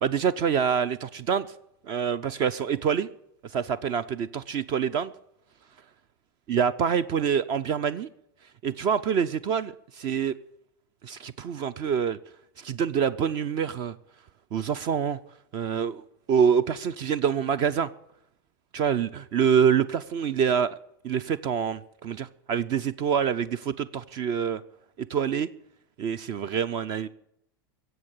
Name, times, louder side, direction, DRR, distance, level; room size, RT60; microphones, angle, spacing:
voice 1, 0.0-1.5 1.9-3.1 3.5-5.1 6.5-8.1 8.6-10.4 11.0-12.2 12.6-13.9 14.5-15.2 15.5-16.0 16.3-17.9 18.7-20.8 21.0-24.6 25.1-25.5 26.0-27.1, right 7 dB, 35° right, 18 dB, 0.6 m, -26 dB
16.0 x 7.8 x 8.9 m, 0.80 s
supercardioid pair, 145°, 12 cm